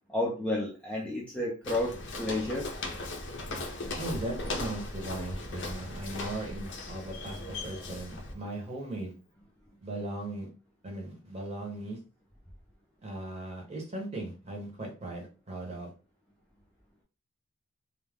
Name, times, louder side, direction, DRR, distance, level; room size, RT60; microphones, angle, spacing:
voice 1, 0.1-2.7, left 1 dB, 5° left, -3 dB, 0.4 m, -31 dB
Walk footsteps, 1.6-8.3, left 2 dB, 55° left, 0.5 m, -38 dB
voice 2, 4.0-9.2 9.8-10.5 10.8-12.0 13.0-15.9, right 1 dB, 30° right, 0 dB, 0.8 m, -38 dB
2.3 x 2.1 x 3.4 m, 0.34 s
head